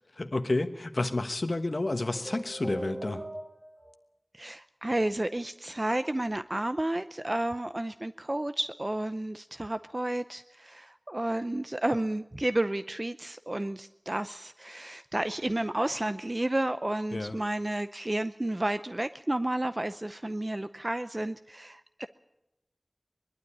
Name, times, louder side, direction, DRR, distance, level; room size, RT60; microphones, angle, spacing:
voice 1, 0.2-3.3 17.1-17.4, left 2 dB, 80° left, 8 dB, 1.2 m, -30 dB
sound 1, 1.8-3.9, right 1 dB, 65° right, 3.7 m, -40 dB
voice 2, 4.3-22.1, right 1 dB, 40° right, 11 dB, 0.6 m, -31 dB
21.5 x 12.5 x 9.9 m, 0.90 s
wide cardioid pair, 45°, 0 cm